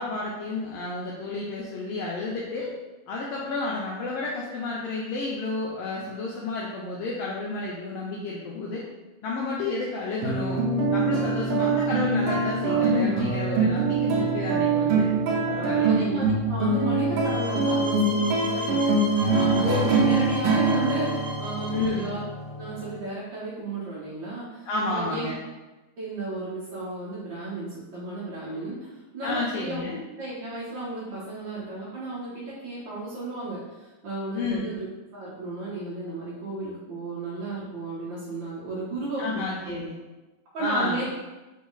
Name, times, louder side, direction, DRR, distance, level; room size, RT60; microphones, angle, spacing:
voice 1, 0.0-2.7 3.1-8.8 9.2-10.7 10.9-16.0 19.6-20.1 21.7-22.1 24.6-25.4 29.2-30.0 34.3-34.7 39.2-39.9 40.6-41.0, left 3 dB, 90° left, -4 dB, 1.4 m, -31 dB
sound 1, 10.2-23.0, right 3 dB, 85° right, 1.3 m, -24 dB
voice 2, 15.6-22.2 22.6-25.3 26.0-29.8 30.2-34.9 35.1-39.8 40.5-41.0, right 2 dB, 70° right, -8 dB, 1.1 m, -33 dB
sound 2, 17.2-22.1, right 1 dB, 40° right, 0.6 m, -36 dB
4.2 x 3.1 x 3.8 m, 1.1 s
omnidirectional pair, 3.4 m